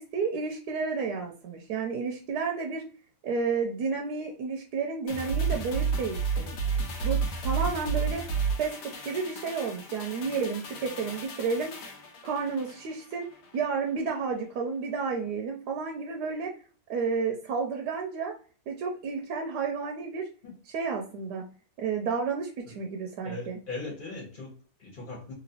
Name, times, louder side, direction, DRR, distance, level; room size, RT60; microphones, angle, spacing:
voice 1, 0.0-2.8 3.2-6.6 7.0-8.2 8.6-11.7 12.2-13.3 13.5-16.5 16.9-18.3 18.7-20.3 20.7-21.4 21.8-23.6, right 5 dB, 80° right, 1 dB, 1.2 m, -31 dB
sound 1, 5.1-13.7 14.0-14.1, right 5 dB, 85° left, 1.4 m, -32 dB
voice 2, 23.2-25.3, left 3 dB, 30° left, -3 dB, 1.3 m, -39 dB
3.1 x 2.9 x 2.7 m, 0.38 s
omnidirectional pair, 1.7 m